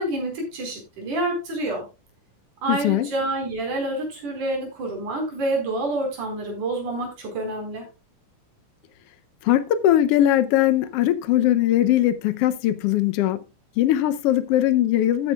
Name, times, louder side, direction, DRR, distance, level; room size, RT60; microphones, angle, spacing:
voice 1, 0.0-1.9 2.6-7.9, right 2 dB, 75° right, 5.8 m, -28 dB
voice 2, 2.7-3.1 9.4-13.4 13.8-15.3, left 12 dB, 85° left, 1.3 m, -20 dB
13.5 x 9.2 x 2.3 m
omnidirectional pair, 3.6 m